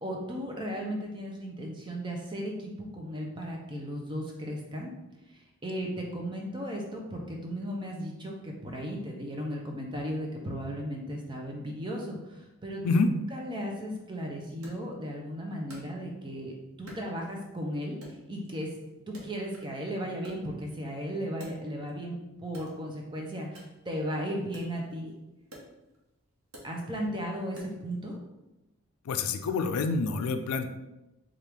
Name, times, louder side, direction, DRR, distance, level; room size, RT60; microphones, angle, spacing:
voice 1, 0.0-4.9 5.3-12.8 13.3-18.7 19.1-25.1 26.6-28.2, equal, 20° right, 0 dB, 0.6 m, -36 dB
Wood, 14.6-16.4 16.9-17.6 18.0-19.8 20.1-22.0 22.5-28.0, equal, 80° right, 1.0 m, -52 dB
voice 2, 29.0-30.7, left 3 dB, 90° left, 8 dB, 0.4 m, -27 dB
4.5 x 2.4 x 3.4 m, 0.97 s
head